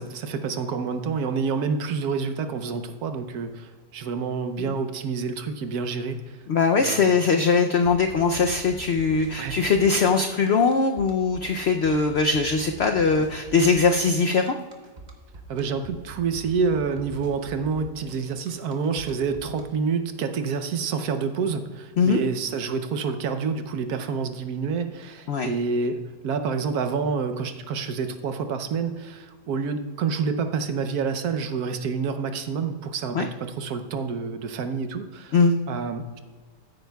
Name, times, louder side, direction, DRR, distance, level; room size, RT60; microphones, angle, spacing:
voice 1, 0.0-6.4 6.8-7.1 9.4-9.6 13.2-13.3 15.5-35.4 35.7-36.2, right 5 dB, 70° right, 8 dB, 1.2 m, -28 dB
voice 2, 6.5-14.5 22.0-22.2 25.3-25.5 33.1-33.3 35.3-35.5, left 4 dB, 90° left, 5 dB, 0.5 m, -21 dB
sound 1, 7.8-19.6, right 3 dB, 30° right, 1.1 m, -43 dB
15.0 x 9.1 x 2.3 m, 1.4 s
omnidirectional pair, 1.8 m